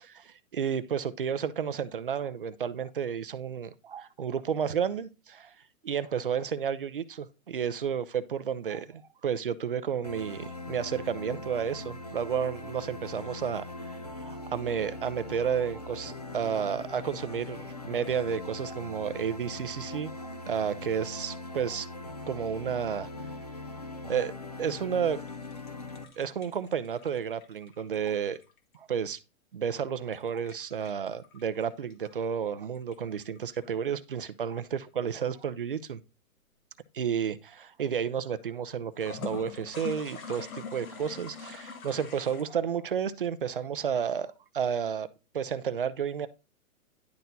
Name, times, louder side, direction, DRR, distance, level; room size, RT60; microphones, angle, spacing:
voice 1, 0.0-5.5 5.8-13.6 14.2-21.9 22.3-23.1 24.0-24.3 24.6-25.2 26.2-28.4 28.7-29.2 29.5-36.0 36.9-45.1 45.3-46.3, right 7 dB, 40° right, 0.5 m, -31 dB
sound 1, 10.0-26.0, left 2 dB, 30° left, 0.4 m, -41 dB
sound 2, 25.1-28.8 30.1-32.1 32.7-33.6 38.9-42.4, left 6 dB, 75° left, 1.9 m, -43 dB
10.5 x 4.3 x 4.0 m
hypercardioid pair, 170°, 42 cm